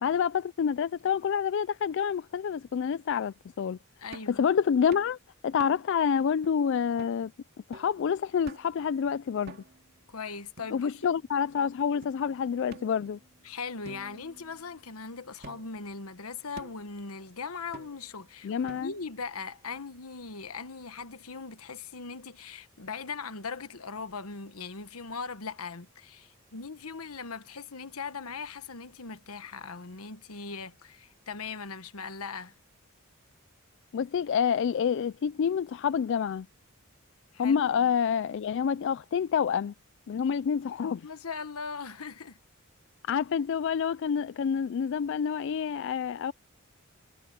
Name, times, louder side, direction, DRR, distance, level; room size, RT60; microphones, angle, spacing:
voice 1, 0.0-3.8 4.3-5.2 5.4-7.3 7.7-9.6 10.7-13.2 18.4-18.9 33.9-36.5 37.4-39.7 40.1-41.1 43.1-46.3, left 7 dB, 55° left, 0.3 m, -28 dB
voice 2, 4.0-4.4 10.1-11.1 13.4-32.5 37.3-37.9 41.0-42.4, left 5 dB, 85° left, 1.3 m, -40 dB
sound 1, 4.1-4.4 4.9-5.1 5.6-6.0 6.4-6.5 7.0-7.2 7.7-8.0 8.5-8.8 9.5-9.9 10.6-11.3 12.0-12.1 12.7-13.4 13.8-14.9 15.4-15.9 16.6-16.9 17.7-18.2 18.7-19.2, right 2 dB, 50° right, 2.1 m, -49 dB
head